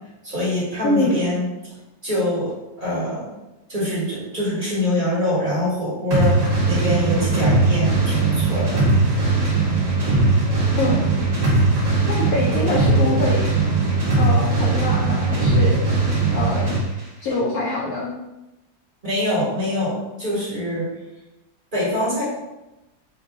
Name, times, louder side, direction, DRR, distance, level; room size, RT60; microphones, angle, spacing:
voice 1, 0.2-1.4 2.0-2.5 2.8-3.3 3.7-8.9 19.0-20.9 21.7-22.2, left 1 dB, 30° right, -8 dB, 1.4 m, -24 dB
voice 2, 0.8-1.2 10.7-11.1 12.1-13.4 14.2-15.8 16.3-16.7 17.2-18.1, left 2 dB, 70° left, -3 dB, 0.9 m, -24 dB
sound 1, 6.1-16.9, right 3 dB, 45° right, 1.2 m, -19 dB
3.9 x 2.5 x 3.5 m, 0.98 s
omnidirectional pair, 2.0 m